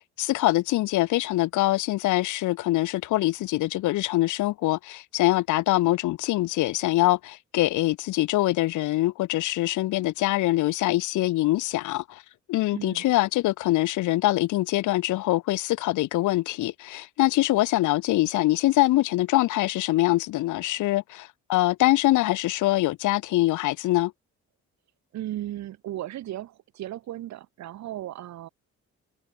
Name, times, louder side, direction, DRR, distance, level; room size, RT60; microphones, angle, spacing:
voice 1, 0.0-12.2 12.5-24.1, left 17 dB, 80° left, 0.7 m, -24 dB
voice 2, 12.7-13.1 25.1-28.5, right 13 dB, 65° right, 0.8 m, -36 dB
open air
cardioid pair, 90°, 30 cm